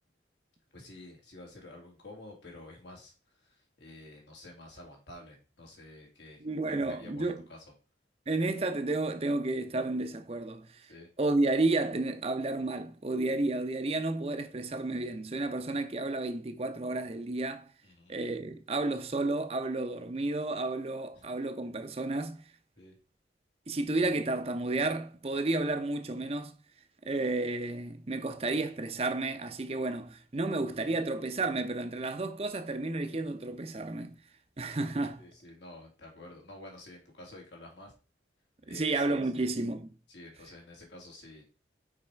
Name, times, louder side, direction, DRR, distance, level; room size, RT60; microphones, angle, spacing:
voice 1, 0.7-3.1 3.8-6.4 6.8-7.7 10.9-11.1 17.8-18.1 22.7-22.9 35.1-37.9 38.7-39.4 40.1-41.4, left 2 dB, 80° left, 2.5 m, -50 dB
voice 2, 6.4-7.4 8.3-10.9 11.2-17.7 18.1-22.4 23.7-26.5 27.0-34.2 34.6-35.2 38.7-39.9, right 2 dB, 35° right, 0.6 m, -31 dB
5.5 x 4.8 x 4.5 m
head